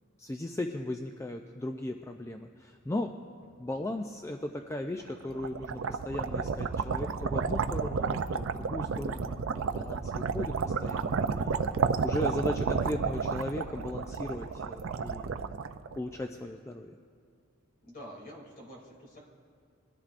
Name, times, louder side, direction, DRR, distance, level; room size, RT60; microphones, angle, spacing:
voice 1, 0.2-3.2 3.6-11.6 12.0-15.4 16.0-17.0, left 1 dB, 15° left, 5 dB, 0.3 m, -37 dB
sound 1, 2.5-14.7, equal, 75° left, 3.6 m, -60 dB
sound 2, 5.1-16.2, right 5 dB, 65° right, 0.4 m, -31 dB
voice 2, 11.7-12.1 17.8-19.2, equal, 45° left, -2 dB, 2.8 m, -48 dB
22.0 x 13.0 x 2.5 m, 2.3 s
head